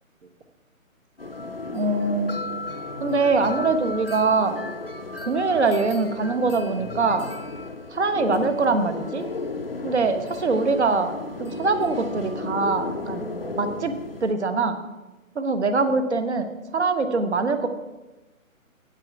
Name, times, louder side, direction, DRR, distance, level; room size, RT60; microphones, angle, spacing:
sound 1, 1.2-14.4, left 3 dB, 45° left, 0.5 m, -34 dB
voice 1, 1.7-2.4 3.0-4.6 5.2-7.3 7.9-9.2 9.8-11.1 11.4-13.3 13.6-13.9 14.2-14.8 15.3-17.7, right 3 dB, 50° right, 9 dB, 1.0 m, -23 dB
8.5 x 7.5 x 5.8 m, 1.1 s
hypercardioid pair, 180°, 42 cm